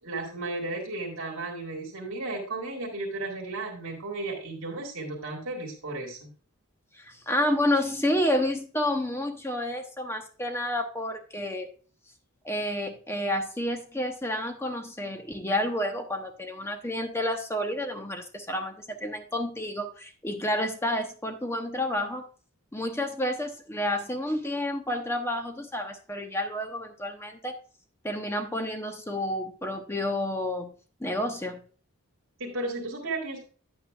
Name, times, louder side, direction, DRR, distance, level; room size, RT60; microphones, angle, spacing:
voice 1, 0.0-6.3 32.4-33.4, right 2 dB, 65° right, -1 dB, 2.1 m, -34 dB
voice 2, 7.0-11.7 12.4-22.3 22.7-27.6 28.0-30.7 31.0-31.6, left 1 dB, 10° left, 5 dB, 0.9 m, -30 dB
9.9 x 8.4 x 2.3 m, 0.41 s
head